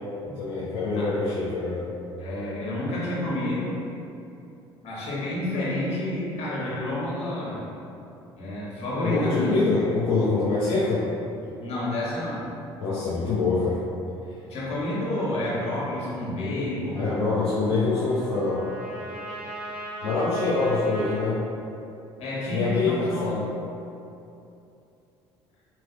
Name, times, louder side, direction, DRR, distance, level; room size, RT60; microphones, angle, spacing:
voice 1, 0.3-1.8 9.0-11.0 12.8-13.8 17.0-18.6 20.0-21.4 22.5-23.4, left 3 dB, 75° left, -11 dB, 0.8 m, -25 dB
voice 2, 2.2-3.8 4.8-7.6 8.4-9.6 11.6-12.5 14.5-17.4 22.2-23.3, left 1 dB, 55° left, -7 dB, 1.5 m, -29 dB
Trumpet, 16.9-21.3, right 1 dB, 55° right, 1.0 m, -39 dB
4.2 x 3.1 x 2.9 m, 2.7 s
hypercardioid pair, 55°, 13 cm